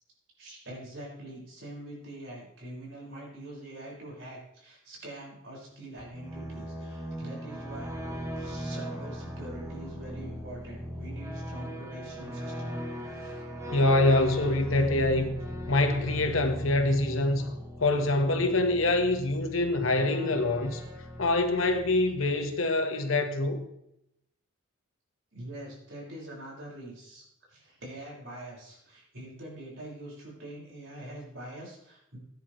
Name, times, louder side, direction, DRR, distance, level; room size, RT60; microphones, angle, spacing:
voice 1, 0.4-7.9 8.4-13.4 25.3-32.2, right 1 dB, 65° right, 5.9 m, -44 dB
sound 1, 6.0-22.6, equal, 15° right, 1.4 m, -39 dB
voice 2, 13.7-15.3 15.7-17.5 17.8-20.8 21.2-23.6, left 2 dB, 85° left, 1.5 m, -25 dB
16.5 x 10.5 x 3.3 m
head